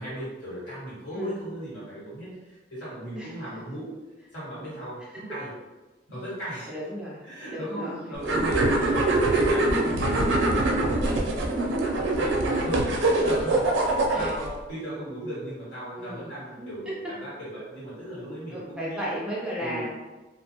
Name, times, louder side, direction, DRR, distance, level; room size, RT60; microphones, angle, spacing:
voice 1, 0.0-3.9 4.3-5.5 6.1-6.7 7.2-19.1 19.6-19.9, right 1 dB, 70° left, -9 dB, 1.5 m, -37 dB
voice 2, 3.2-3.5 6.7-8.2 14.1-14.3 16.0-16.3 16.6-16.7 18.5-19.9, equal, 5° right, -6 dB, 0.4 m, -35 dB
sound 1, 8.2-14.5, right 2 dB, 85° right, 0.5 m, -23 dB
2.4 x 2.1 x 2.8 m, 1.2 s
head